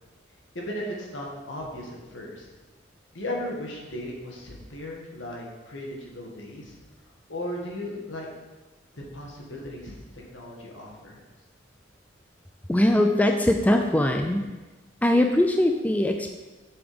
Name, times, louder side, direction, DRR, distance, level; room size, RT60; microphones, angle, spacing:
voice 1, 0.5-2.5 3.1-6.8 7.3-8.3 8.9-11.2, left 1 dB, 75° left, -2 dB, 1.9 m, -36 dB
voice 2, 12.7-14.5 15.0-16.3, left 1 dB, 10° left, 4 dB, 0.3 m, -21 dB
7.0 x 7.0 x 5.1 m, 1.2 s
head